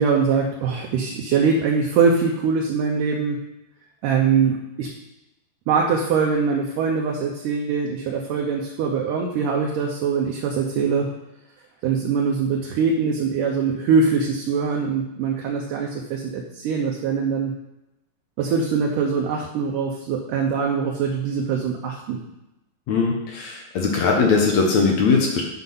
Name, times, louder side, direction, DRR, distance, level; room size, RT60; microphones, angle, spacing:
voice 1, 0.0-3.4 4.0-4.9 5.7-11.1 11.8-17.5 18.4-22.2, right 5 dB, 75° right, 0 dB, 2.0 m, -22 dB
voice 2, 22.9-25.4, left 4 dB, 65° left, 0 dB, 1.8 m, -20 dB
9.5 x 4.7 x 5.5 m, 0.94 s
omnidirectional pair, 4.5 m